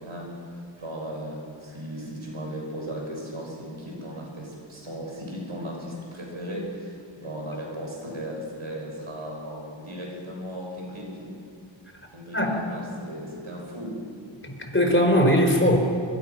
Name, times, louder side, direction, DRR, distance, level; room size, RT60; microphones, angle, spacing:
voice 1, 0.0-11.3 12.1-14.0, equal, 85° right, -1 dB, 6.3 m, -36 dB
voice 2, 14.4-15.8, equal, 25° left, 3 dB, 4.3 m, -20 dB
24.5 x 23.0 x 6.1 m, 2.3 s
wide cardioid pair, 40°, 47 cm